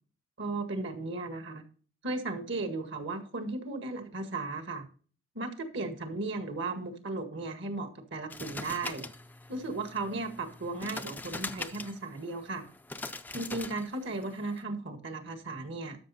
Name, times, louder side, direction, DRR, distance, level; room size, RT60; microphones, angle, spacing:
voice 1, 0.4-1.6 2.0-4.9 5.4-9.0 9.5-12.7 13.3-16.0, right 2 dB, 60° right, 6 dB, 1.8 m, -36 dB
sound 1, 8.3-14.6, left 2 dB, 10° left, 0.4 m, -42 dB
12.5 x 6.3 x 4.2 m, 0.41 s
head